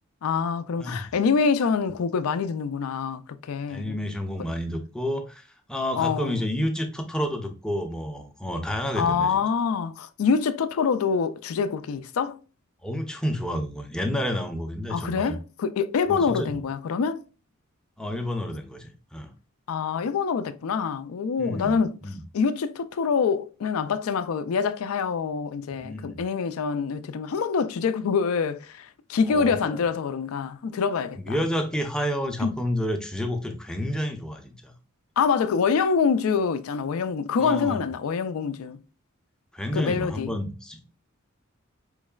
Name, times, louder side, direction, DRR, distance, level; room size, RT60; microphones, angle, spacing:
voice 1, 0.2-4.0 6.0-6.5 9.0-12.4 14.9-17.2 19.7-22.0 22.3-31.4 32.4-32.6 35.2-38.8 39.7-40.3, left 5 dB, 80° left, 0.4 m, -25 dB
voice 2, 3.7-9.4 12.8-15.4 16.1-16.6 18.0-19.3 21.4-22.2 25.7-26.2 29.3-29.8 31.2-34.7 37.4-37.8 39.5-40.9, equal, 5° left, 0.5 m, -30 dB
4.6 x 3.1 x 2.2 m
head